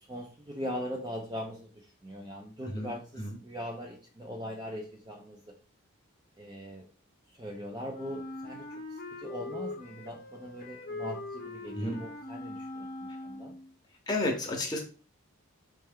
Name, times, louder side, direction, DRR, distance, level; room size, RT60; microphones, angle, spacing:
voice 1, 0.1-5.4 6.4-6.8 7.4-8.7 9.2-13.5, equal, 20° right, 1 dB, 0.5 m, -40 dB
Wind instrument woodwind instrument, 7.9-13.7, left 2 dB, 40° left, 0.8 m, -41 dB
voice 2, 14.1-14.8, left 2 dB, 20° left, 0 dB, 1.0 m, -31 dB
4.4 x 3.3 x 3.6 m, 0.37 s
head